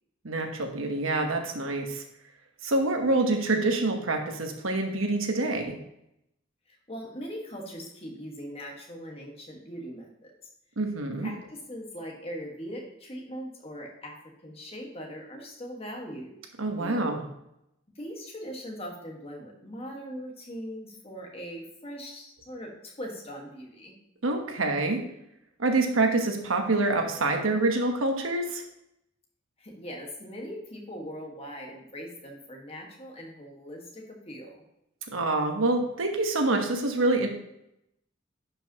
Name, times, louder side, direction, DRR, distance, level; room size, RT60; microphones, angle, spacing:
voice 1, 0.2-2.0 2.6-5.8 10.8-11.3 16.6-17.2 24.2-25.0 25.6-28.6 35.1-37.3, right 2 dB, 80° right, 4 dB, 1.1 m, -26 dB
voice 2, 6.7-10.3 11.2-14.2 14.4-16.3 16.8-17.1 17.9-23.9 29.6-34.6, equal, 30° left, 0 dB, 1.5 m, -40 dB
11.0 x 5.4 x 2.9 m, 0.82 s
head